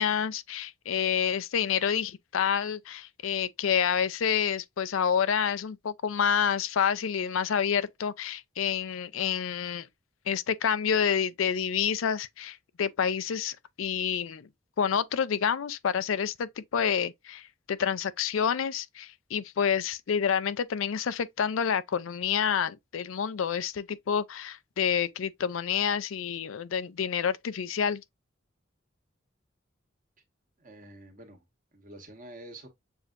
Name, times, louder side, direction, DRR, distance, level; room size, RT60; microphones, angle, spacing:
voice 1, 0.0-9.9 10.3-14.5 14.8-28.0, left 7 dB, 85° left, 0.4 m, -28 dB
voice 2, 30.6-31.4 31.7-32.7, right 1 dB, 45° right, 1.4 m, -47 dB
6.9 x 2.7 x 2.5 m
head